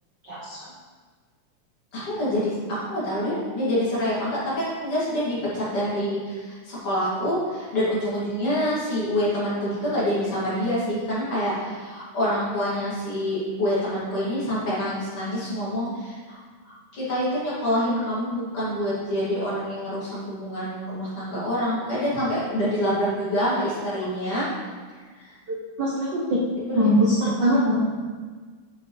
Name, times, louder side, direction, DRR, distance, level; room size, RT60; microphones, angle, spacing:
voice 1, 0.3-0.6 25.8-26.4 26.7-27.8, equal, 60° right, -5 dB, 1.1 m, -21 dB
voice 2, 1.9-2.5 2.9-16.4 16.9-24.5 25.2-25.3 26.7-26.8, equal, 45° left, -9 dB, 3.4 m, -26 dB
9.0 x 7.5 x 3.4 m, 1.5 s
omnidirectional pair, 3.6 m